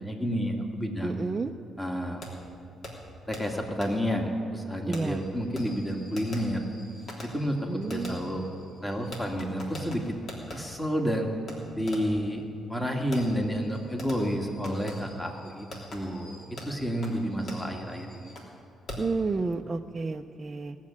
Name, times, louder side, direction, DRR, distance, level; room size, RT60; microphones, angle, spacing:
voice 1, 0.0-1.1 1.8-2.2 3.3-6.6 7.2-8.5 8.8-10.2 10.5-11.3 11.8-12.4 12.7-18.3, equal, 15° left, 2 dB, 1.9 m, -30 dB
voice 2, 1.0-1.5 4.8-5.2 7.7-8.3 19.0-20.8, right 3 dB, 30° right, 3 dB, 0.5 m, -31 dB
Fireworks, 2.2-2.3 2.8-2.9 3.3-3.4 3.8-3.9 4.9-10.6 11.5-11.6 11.9-12.2 13.1-18.5 18.9-19.2, left 1 dB, 55° left, 3.2 m, -44 dB
18.0 x 7.4 x 9.7 m, 2.4 s
cardioid pair, 90°, 0 cm